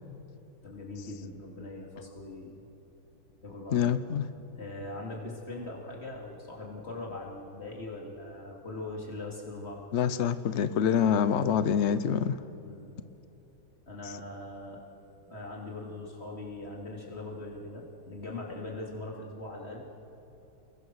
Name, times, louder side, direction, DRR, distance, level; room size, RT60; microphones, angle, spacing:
voice 1, 0.6-2.6 3.4-3.9 4.5-9.8 12.6-12.9 13.9-14.8 15.3-19.9, left 2 dB, 30° left, -2 dB, 3.6 m, -41 dB
voice 2, 3.7-4.2 9.9-12.4, left 8 dB, 85° left, 12 dB, 0.6 m, -26 dB
30.0 x 21.0 x 6.5 m, 3.0 s
omnidirectional pair, 2.2 m